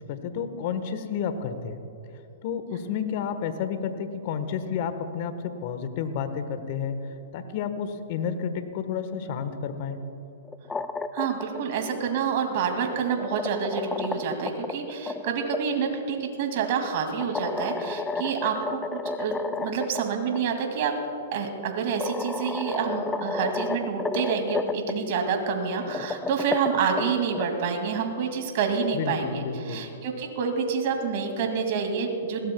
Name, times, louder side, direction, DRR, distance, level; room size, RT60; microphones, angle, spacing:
voice 1, 0.0-1.8 2.4-7.0 7.3-10.0 28.9-29.8, left 7 dB, 50° left, 9 dB, 1.3 m, -31 dB
sound 1, 10.4-11.6 12.8-15.6 17.2-20.0 20.3-20.4 21.5-21.6 22.0-24.9 25.8-27.4, left 4 dB, 10° left, 0.5 m, -32 dB
voice 2, 11.1-20.9 21.3-32.5, right 6 dB, 55° right, 4 dB, 2.3 m, -28 dB
20.5 x 17.0 x 2.3 m, 2.9 s
hypercardioid pair, 115°, 0 cm